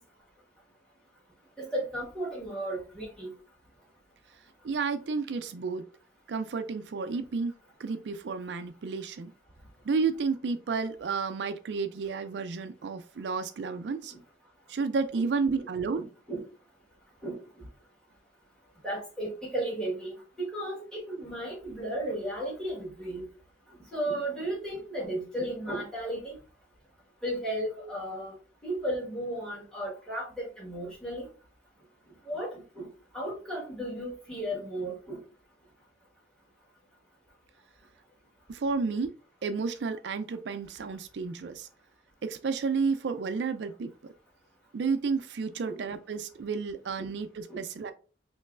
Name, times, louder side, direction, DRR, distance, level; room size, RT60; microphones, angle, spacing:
voice 1, 1.6-3.3 15.9-16.4 17.2-17.4 18.8-23.2 23.9-26.4 27.2-28.3 28.6-31.3 32.3-32.9 33.1-35.2 45.7-45.8 47.0-47.1 47.5-47.6, right 1 dB, 5° left, -6 dB, 1.6 m, -34 dB
voice 2, 4.6-5.8 6.3-7.5 7.8-9.3 9.8-14.1 14.7-16.0 38.5-39.1 39.4-41.7 42.2-43.9 44.7-47.9, right 4 dB, 80° right, 9 dB, 0.4 m, -31 dB
5.3 x 3.0 x 2.4 m, 0.37 s
head